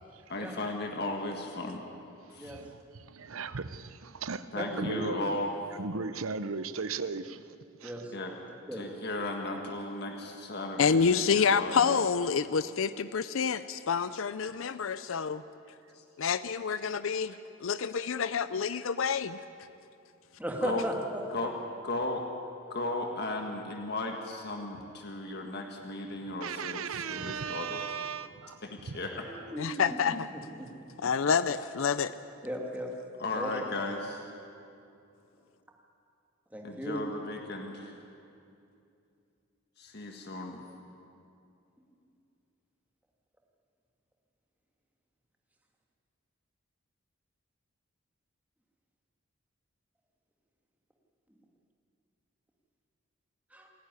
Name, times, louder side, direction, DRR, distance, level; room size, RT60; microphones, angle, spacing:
voice 1, 0.3-1.8 2.3-2.5 4.5-5.5 8.1-8.3 8.7-12.0 15.9-16.0 20.6-20.8 21.3-21.5 21.8-22.2 22.7-27.8 28.7-29.3 33.2-34.3 36.6-38.0 39.8-40.6, left 2 dB, 50° left, 1.7 m, -36 dB
voice 2, 2.4-5.2 5.7-8.0 17.1-17.2 26.4-28.6 28.9-29.0, right 5 dB, 75° right, 0.8 m, -37 dB
voice 3, 4.5-5.3 7.8-8.1 8.7-8.8 20.4-21.5 29.3-29.8 30.1-30.9 32.4-32.9 33.3-33.6 36.5-37.0 53.5-53.7, right 1 dB, 5° right, 2.3 m, -36 dB
voice 4, 10.8-15.4 16.2-17.3 17.6-19.4 29.6-30.3 31.0-32.1, left 6 dB, 70° left, 0.5 m, -28 dB
27.5 x 11.5 x 9.7 m
head